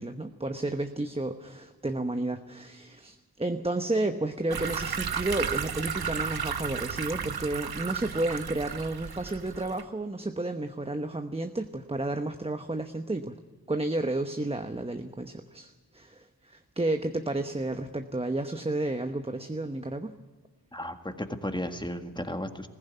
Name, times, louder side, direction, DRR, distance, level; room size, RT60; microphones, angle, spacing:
voice 1, 0.0-13.3 13.7-20.1, right 2 dB, 15° right, 6 dB, 0.9 m, -32 dB
sound 1, 4.5-9.8, right 7 dB, 70° right, 1.1 m, -33 dB
voice 2, 20.7-22.7, left 1 dB, 10° left, 6 dB, 1.8 m, -34 dB
20.5 x 16.0 x 9.3 m, 1.4 s
wide cardioid pair, 85°, 38 cm